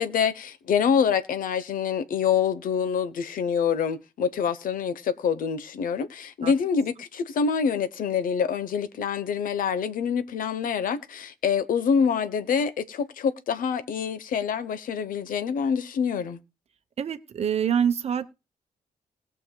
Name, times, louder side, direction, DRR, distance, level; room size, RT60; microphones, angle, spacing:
voice 1, 0.0-16.4, left 6 dB, 75° left, 0.9 m, -26 dB
voice 2, 17.0-18.3, right 8 dB, 45° right, 0.8 m, -25 dB
20.5 x 7.0 x 2.3 m
wide cardioid pair, 145°, 14 cm